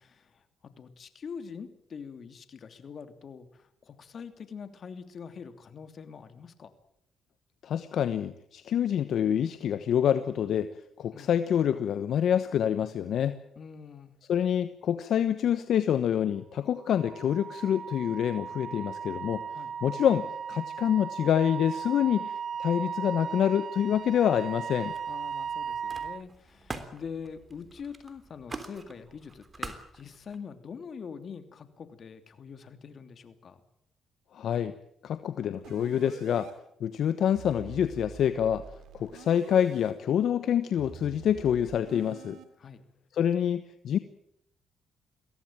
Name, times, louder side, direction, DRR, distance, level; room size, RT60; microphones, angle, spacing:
voice 1, 0.0-6.7 11.1-11.3 13.6-14.2 19.5-19.7 25.1-33.6 42.6-42.9, left 6 dB, 50° left, 9 dB, 3.0 m, -44 dB
voice 2, 7.6-10.7 11.0-13.4 14.3-19.4 19.8-24.9 34.3-34.7 35.0-36.5 36.8-38.6 38.9-42.4 43.1-44.0, left 9 dB, 70° left, 11 dB, 1.2 m, -27 dB
Wind instrument woodwind instrument, 16.8-26.2, right 7 dB, 50° right, 0.8 m, -37 dB
Camera, 23.9-24.5 24.8-30.4, right 3 dB, 25° right, 3.4 m, -45 dB
sound 1, 35.6-36.5 37.3-39.9 40.8-42.4, right 7 dB, 80° right, 2.8 m, -47 dB
23.0 x 17.0 x 9.0 m, 0.73 s
cardioid pair, 90°, 0 cm